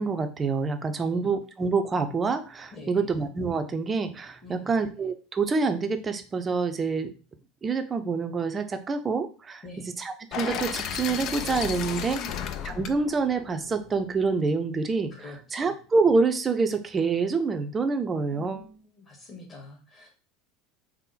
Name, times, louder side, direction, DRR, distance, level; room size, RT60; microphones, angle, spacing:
voice 1, 0.0-7.1 7.6-9.6 10.0-12.2 12.6-15.1 15.5-18.7, right 4 dB, 25° right, 8 dB, 0.5 m, -26 dB
voice 2, 1.0-1.3 2.7-3.2 4.4-4.8 9.6-9.9 12.1-12.5 15.1-15.8 18.1-20.1, left 2 dB, 30° left, 1 dB, 1.6 m, -45 dB
sound 1, 10.3-14.4, left 8 dB, 50° left, 0.4 m, -34 dB
3.6 x 2.1 x 4.0 m, 0.36 s
hypercardioid pair, 85°, 0 cm